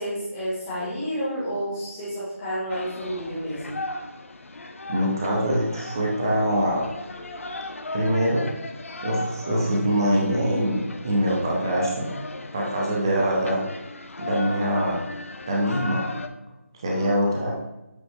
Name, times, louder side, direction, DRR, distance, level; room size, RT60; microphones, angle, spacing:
voice 1, 0.0-3.8 12.9-13.2 16.9-17.4, equal, 10° left, -9 dB, 1.5 m, -31 dB
sound 1, 2.7-16.3, left 2 dB, 65° left, 0.7 m, -37 dB
voice 2, 4.9-6.8 7.9-8.5 9.0-12.1 12.5-13.6 14.2-15.0 15.5-16.0 16.8-17.6, equal, 15° right, -3 dB, 0.7 m, -23 dB
8.0 x 3.9 x 3.5 m, 0.99 s
figure-of-eight pair, 175°, 8 cm